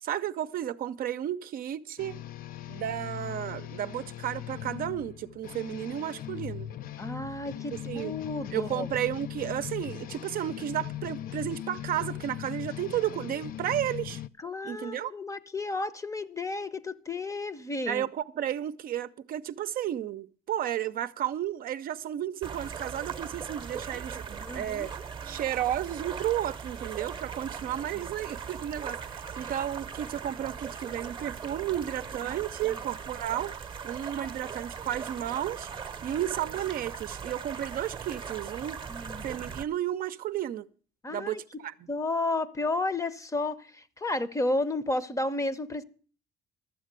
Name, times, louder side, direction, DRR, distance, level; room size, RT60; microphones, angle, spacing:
voice 1, 0.0-2.2 2.7-6.7 7.9-8.1 8.5-14.2 14.6-15.1 17.9-24.9 25.3-33.6 33.8-35.7 36.0-38.8 39.2-40.7 41.1-41.7, right 11 dB, 60° right, 0.6 m, -33 dB
sound 1, 2.0-14.3, left 12 dB, 60° left, 0.5 m, -39 dB
voice 2, 7.0-8.9 14.4-18.1 24.4-24.9 27.9-28.0 32.6-32.8 38.9-39.2 41.0-41.6 41.9-45.8, left 2 dB, 20° left, 0.7 m, -32 dB
sound 2, 22.4-39.6, right 6 dB, 30° right, 0.8 m, -39 dB
13.0 x 7.4 x 7.4 m
cardioid pair, 110°, 17 cm